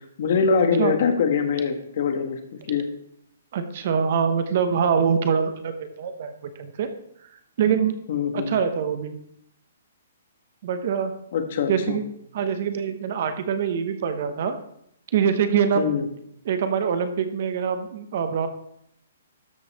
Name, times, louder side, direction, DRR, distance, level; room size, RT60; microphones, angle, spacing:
voice 1, 0.2-2.4 2.7-2.9 8.1-8.6 11.3-12.0 15.7-16.0, left 5 dB, 40° left, 6 dB, 1.3 m, -23 dB
voice 2, 3.5-6.9 7.6-7.9 8.3-9.2 10.6-11.1 11.7-12.0 12.3-14.6 15.1-15.9 16.4-18.5, right 7 dB, 40° right, 9 dB, 0.9 m, -24 dB
13.0 x 5.5 x 4.2 m, 0.74 s
hypercardioid pair, 175°, 0 cm